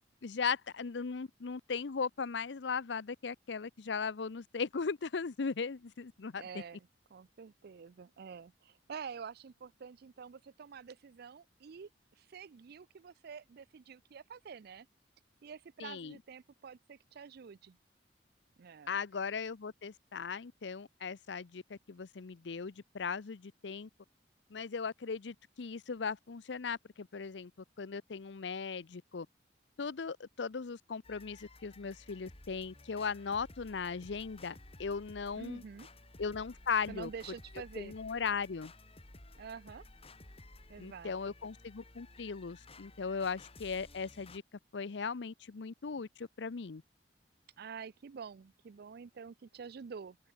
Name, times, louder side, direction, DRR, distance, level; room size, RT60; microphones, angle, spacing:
voice 1, 0.2-6.6 15.8-16.2 18.9-23.9 24.5-27.5 27.8-29.3 29.8-35.6 36.2-37.1 37.8-38.7 40.8-44.4 44.7-46.8, left 5 dB, 70° left, 0.6 m, -38 dB
voice 2, 6.3-11.9 12.2-14.9 15.4-17.8 18.6-18.9 35.3-35.9 36.9-37.9 39.4-39.8 40.7-41.1 47.6-50.2, right 6 dB, 60° right, 0.4 m, -48 dB
sound 1, 31.0-44.4, left 2 dB, 35° left, 3.3 m, -55 dB
open air
head